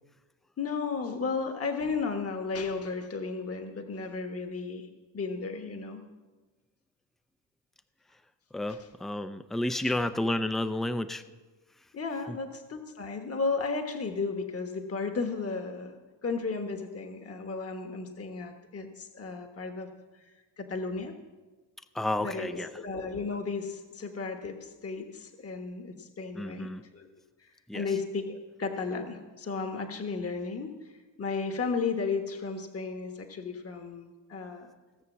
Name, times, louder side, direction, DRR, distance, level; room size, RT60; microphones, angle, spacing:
voice 1, 0.6-4.9 5.1-6.1 8.7-8.9 9.7-10.0 11.9-19.9 20.1-21.1 22.2-27.1 27.4-34.7, left 4 dB, 30° left, 5 dB, 1.3 m, -34 dB
voice 2, 8.5-11.2 21.9-22.7 26.4-26.8 27.7-27.9, left 1 dB, ahead, 12 dB, 0.5 m, -31 dB
17.0 x 6.7 x 7.3 m, 1.3 s
cardioid pair, 90°, 45 cm